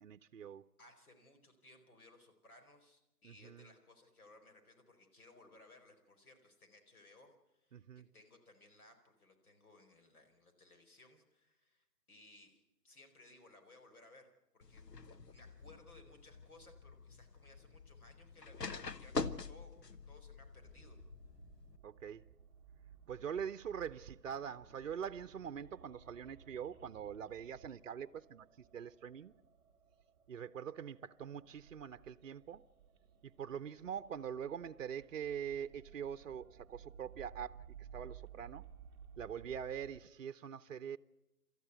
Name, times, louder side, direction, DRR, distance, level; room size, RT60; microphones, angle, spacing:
voice 1, 0.0-0.6 3.2-3.7 7.7-8.1 21.8-22.2 23.1-29.3 30.3-32.7 33.2-38.6 39.2-41.0, right 8 dB, 55° right, 0.8 m, -44 dB
voice 2, 0.8-21.0, left 2 dB, 65° left, 4.6 m, -62 dB
sound 1, 14.6-21.8, left 4 dB, 85° left, 1.3 m, -45 dB
sound 2, 20.6-40.0, right 8 dB, 15° right, 1.1 m, -58 dB
27.5 x 13.5 x 8.1 m
figure-of-eight pair, 150°, 47 cm